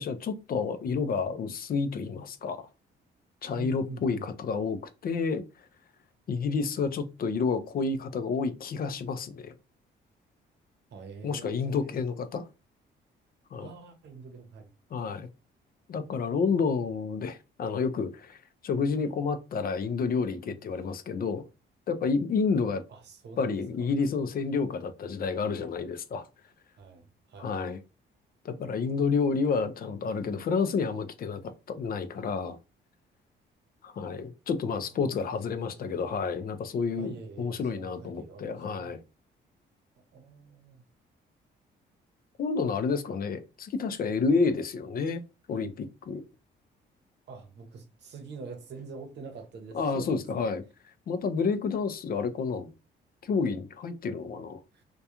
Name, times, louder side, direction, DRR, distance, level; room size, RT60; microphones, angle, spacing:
voice 1, 0.0-2.7 3.4-5.4 6.3-9.5 11.2-12.5 13.5-13.7 14.9-15.3 15.9-18.4 18.6-21.4 21.9-22.8 23.4-26.3 27.4-27.8 28.4-32.6 33.8-39.0 42.4-45.2 45.5-46.2 49.7-50.6 51.1-52.7 53.2-54.6, left 5 dB, 50° left, 0.4 m, -30 dB
voice 2, 3.6-4.3 10.9-12.1 13.6-14.7 22.9-23.9 26.8-27.5 34.9-35.3 35.6-36.1 37.0-39.0 40.1-40.8 47.3-50.4 54.7-54.8, right 4 dB, 60° right, 0.8 m, -45 dB
2.3 x 2.2 x 2.8 m
cardioid pair, 90°, 20 cm